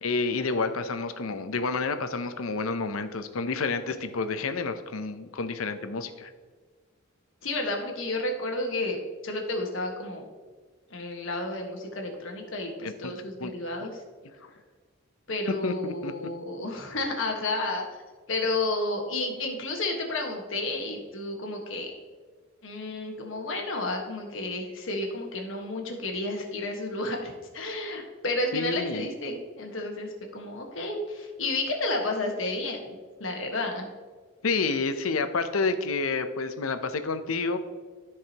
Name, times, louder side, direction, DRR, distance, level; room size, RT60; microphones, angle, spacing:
voice 1, 0.0-6.3 12.8-13.1 13.4-13.5 13.8-13.9 15.5-16.1 28.5-29.1 34.4-37.6, left 4 dB, 85° left, 9 dB, 0.7 m, -29 dB
voice 2, 7.4-9.0 9.2-10.2 10.9-14.0 15.3-17.8 18.3-21.9 22.6-32.9 33.2-33.8, left 2 dB, 70° left, 1 dB, 1.5 m, -31 dB
14.0 x 4.8 x 2.9 m, 1.5 s
head